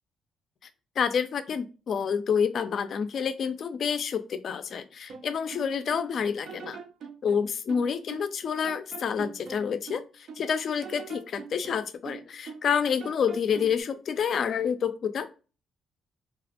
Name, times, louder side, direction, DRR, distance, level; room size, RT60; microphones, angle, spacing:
voice 1, 1.0-6.8 7.2-15.3, left 7 dB, 60° left, 10 dB, 0.3 m, -28 dB
sound 1, 5.1-6.1 6.5-8.4 8.6-10.5 10.8-12.7 13.0-13.8, right 6 dB, 70° right, 0.4 m, -43 dB
2.4 x 2.1 x 2.7 m, 0.33 s
cardioid pair, 90°, 0 cm